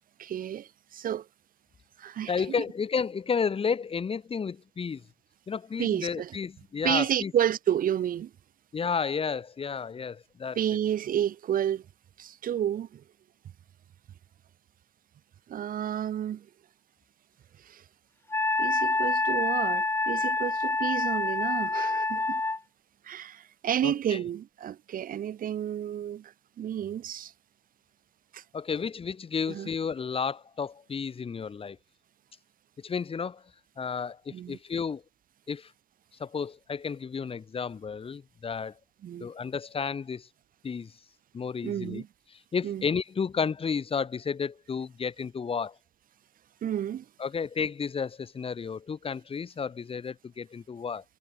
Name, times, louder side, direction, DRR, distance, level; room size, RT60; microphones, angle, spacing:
voice 1, 0.2-1.3 2.0-2.5 5.8-6.4 6.8-8.3 10.5-11.9 12.2-13.0 15.5-16.5 17.6-17.8 18.6-22.4 23.0-27.3 28.3-28.4 29.5-29.7 34.3-34.6 39.0-39.3 41.6-42.1 42.6-42.8 46.6-47.1, right 10 dB, 55° right, 7.9 m, -31 dB
voice 2, 2.3-5.0 5.5-7.3 8.7-10.6 23.8-24.2 28.5-31.8 32.8-33.4 33.8-35.0 35.5-35.7 36.2-38.7 39.2-40.3 40.6-40.9 41.3-42.0 42.5-45.7 47.2-51.0, left 6 dB, 35° left, 7.4 m, -32 dB
Wind instrument woodwind instrument, 18.3-22.6, left 2 dB, 15° left, 2.8 m, -27 dB
cardioid pair, 110°, 17 cm